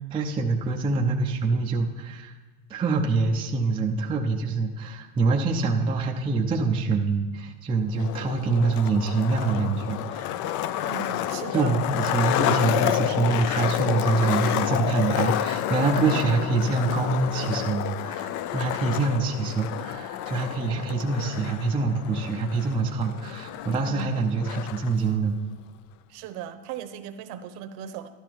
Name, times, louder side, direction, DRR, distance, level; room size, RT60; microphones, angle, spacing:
voice 1, 0.1-2.3 2.7-10.3 11.5-25.4, right 3 dB, 10° right, 1 dB, 0.5 m, -25 dB
Skateboard, 7.9-24.9, left 12 dB, 45° left, 0.4 m, -29 dB
voice 2, 10.7-11.8 23.8-24.1 26.1-28.1, right 8 dB, 55° right, 9 dB, 1.0 m, -37 dB
12.5 x 12.0 x 4.6 m, 1.3 s
cardioid pair, 155°, 46 cm